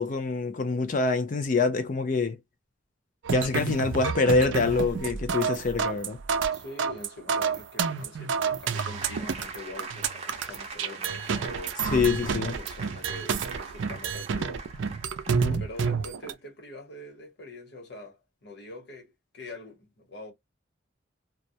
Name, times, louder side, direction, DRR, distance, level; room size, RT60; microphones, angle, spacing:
voice 1, 0.0-2.4 3.3-6.2 11.9-12.6 15.3-15.6, left 3 dB, 45° left, 0.5 m, -25 dB
sound 1, 3.2-16.3, right 6 dB, 80° right, 0.4 m, -29 dB
voice 2, 6.5-11.8 12.3-14.7 15.6-20.3, left 2 dB, 60° left, 1.0 m, -44 dB
sound 2, 8.7-15.8, right 4 dB, 35° right, 0.6 m, -42 dB
2.2 x 2.0 x 2.7 m
head